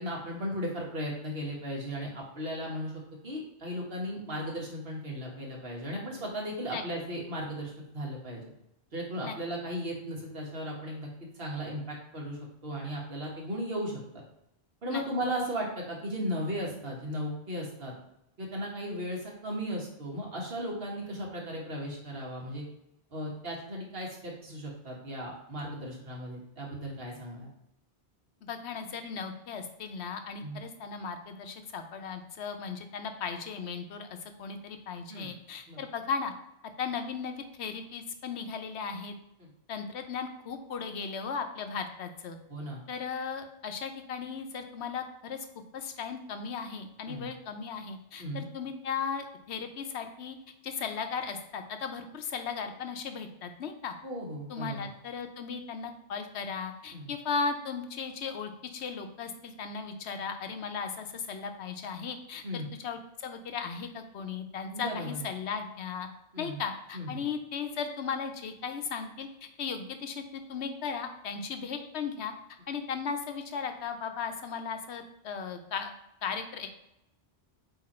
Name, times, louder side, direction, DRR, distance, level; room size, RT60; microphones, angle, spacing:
voice 1, 0.0-8.4 8.9-11.1 11.4-14.0 14.8-17.9 18.4-22.6 23.1-27.5 30.4-30.6 35.1-35.3 35.7-35.8 42.5-42.8 47.1-47.3 48.2-48.5 54.0-54.9 56.9-57.1 62.4-62.7 64.7-65.3 66.3-66.6 66.9-67.2, equal, 65° right, -2 dB, 1.7 m, -36 dB
voice 2, 28.4-36.3 36.8-39.1 39.7-42.4 42.9-45.5 45.7-50.4 50.6-53.9 54.5-66.1 66.4-69.3 69.6-72.3 72.7-75.9 76.2-76.7, left 6 dB, 90° left, 7 dB, 1.0 m, -36 dB
8.0 x 2.9 x 4.3 m, 0.82 s
omnidirectional pair, 1.1 m